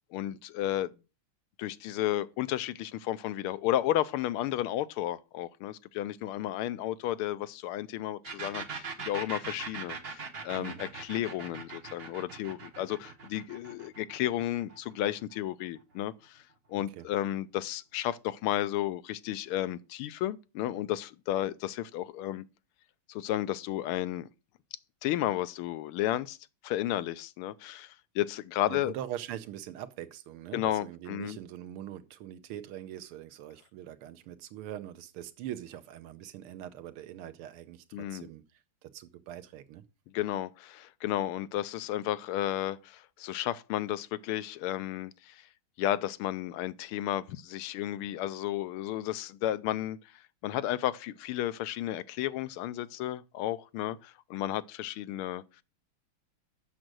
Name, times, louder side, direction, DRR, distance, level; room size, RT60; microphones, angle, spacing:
voice 1, 0.1-0.9 1.6-16.4 16.7-22.4 23.1-24.3 25.0-26.4 26.6-28.9 30.5-31.4 37.9-38.3 40.1-45.5 45.8-50.0 50.4-55.4, left 13 dB, 85° left, 1.5 m, -33 dB
sound 1, 8.2-15.8, right 5 dB, 40° right, 0.9 m, -41 dB
voice 2, 28.7-38.4 38.8-39.8, right 11 dB, 85° right, 1.7 m, -42 dB
7.8 x 6.4 x 6.1 m
omnidirectional pair, 2.4 m